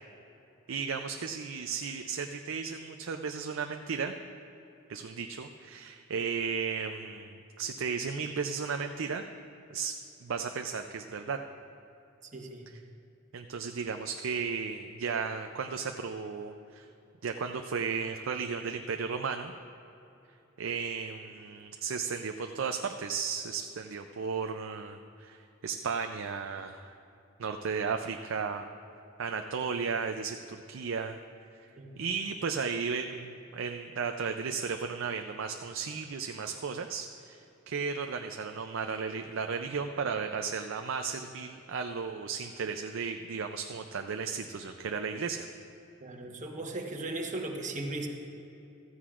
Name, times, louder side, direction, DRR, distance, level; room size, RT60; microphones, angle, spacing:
voice 1, 0.7-4.1 4.9-9.2 9.7-9.9 10.2-11.4 13.3-16.9 17.2-19.5 20.6-26.9 27.4-28.6 29.2-31.2 32.0-45.5, right 5 dB, 65° right, 5 dB, 0.5 m, -34 dB
voice 2, 12.3-12.7 31.8-32.0 46.0-48.1, right 2 dB, 40° right, 2 dB, 1.1 m, -37 dB
15.5 x 14.0 x 2.5 m, 2.9 s
head